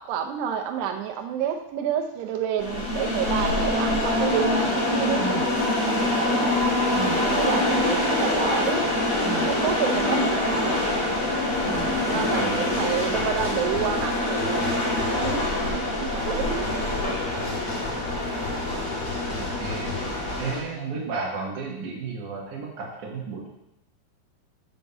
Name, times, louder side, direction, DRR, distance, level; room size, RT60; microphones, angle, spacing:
voice 1, 0.0-6.6 7.2-8.9 9.5-10.9 12.0-16.6, right 9 dB, 85° right, 4 dB, 2.3 m, -29 dB
sound 1, 2.6-20.6, left 2 dB, 60° left, 1.4 m, -25 dB
voice 2, 6.9-7.2 9.2-9.5 11.7-12.6 19.4-23.5, right 5 dB, 65° right, -5 dB, 2.0 m, -33 dB
7.3 x 5.4 x 7.1 m, 0.83 s
omnidirectional pair, 5.8 m